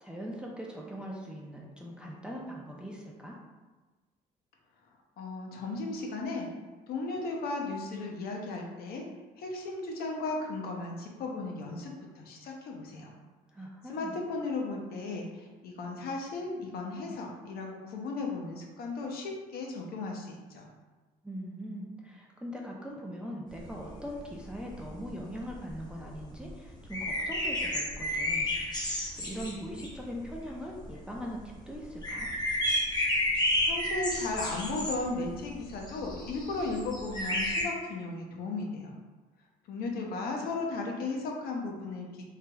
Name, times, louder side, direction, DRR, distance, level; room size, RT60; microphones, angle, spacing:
voice 1, 0.0-3.4 13.5-14.2 21.2-28.5 29.2-32.3, equal, 5° right, -2 dB, 0.4 m, -41 dB
voice 2, 5.2-6.5 6.9-9.0 9.4-13.1 13.9-20.7 33.6-39.0 39.7-42.2, left 3 dB, 65° left, 0 dB, 0.6 m, -35 dB
sound 1, 23.6-30.9 31.2-31.5 31.7-37.6, left 1 dB, 25° left, 0.7 m, -32 dB
3.3 x 2.8 x 2.2 m, 1.2 s
cardioid pair, 110°, 17 cm